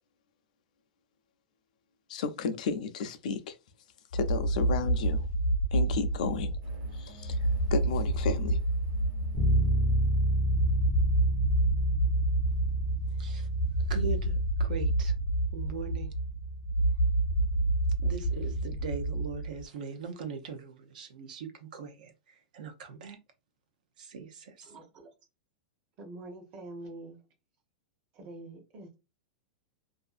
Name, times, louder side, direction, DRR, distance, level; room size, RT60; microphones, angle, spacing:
voice 1, 2.1-3.6 4.1-5.3 5.7-6.6 6.9-7.4 7.7-8.6, left 5 dB, 60° left, 0.4 m, -33 dB
Horror Stress Tension, 4.1-19.7, right 1 dB, 85° left, 0.8 m, -29 dB
Versailles - Ambiance, 6.6-11.8, right 3 dB, 50° right, 1.2 m, -55 dB
Bass guitar, 9.3-19.1, right 1 dB, 10° left, 0.5 m, -30 dB
voice 2, 13.2-13.5 13.9-15.1 15.5-16.2 18.0-23.2 24.0-24.7, right 5 dB, 75° right, 0.7 m, -40 dB
voice 3, 24.6-25.1 26.0-27.2 28.1-29.0, right 2 dB, 30° right, 0.8 m, -45 dB
2.5 x 2.4 x 2.4 m
supercardioid pair, 165°, 5 cm